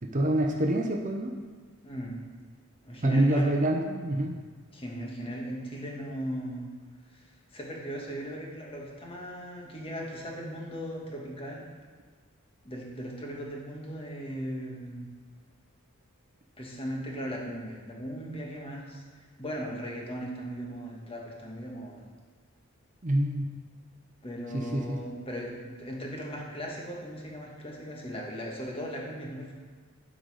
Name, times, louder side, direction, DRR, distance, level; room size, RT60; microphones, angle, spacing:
voice 1, 0.0-1.4 3.0-4.3 23.0-23.6 24.5-25.0, right 1 dB, 35° right, 2 dB, 0.7 m, -26 dB
voice 2, 1.8-2.2 2.8-3.5 4.7-6.7 7.1-11.7 12.6-15.1 16.6-22.1 24.2-29.5, equal, 25° left, -2 dB, 1.4 m, -38 dB
12.0 x 4.0 x 4.9 m, 1.5 s
head